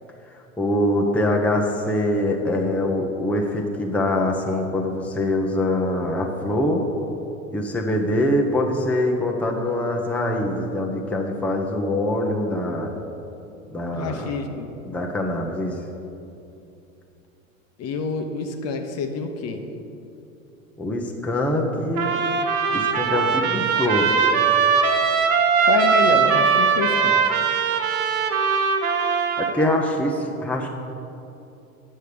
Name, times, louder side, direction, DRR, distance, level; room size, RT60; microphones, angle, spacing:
voice 1, 0.6-6.8 7.5-12.9 13.7-14.3 14.9-15.7 20.8-22.2 22.7-24.1 29.4-30.7, left 1 dB, 5° left, 0 dB, 0.8 m, -24 dB
voice 2, 13.9-14.7 17.8-19.6 25.6-27.3, left 4 dB, 35° left, 5 dB, 0.9 m, -27 dB
Trumpet, 22.0-29.6, right 6 dB, 75° right, 1.0 m, -20 dB
9.2 x 6.5 x 5.0 m, 2.8 s
hypercardioid pair, 90°, 42 cm